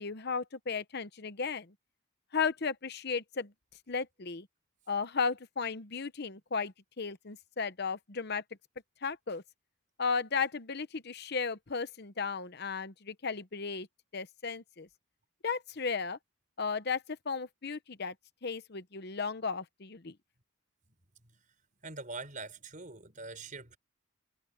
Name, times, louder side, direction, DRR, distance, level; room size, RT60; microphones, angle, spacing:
voice 1, 0.0-1.7 2.3-3.5 3.9-4.5 4.9-8.4 9.0-9.4 10.0-13.9 14.1-14.9 15.4-16.2 16.6-18.1 18.4-20.1, left 5 dB, 50° left, 0.9 m, -35 dB
voice 2, 21.8-23.8, right 3 dB, 40° right, 7.0 m, -43 dB
head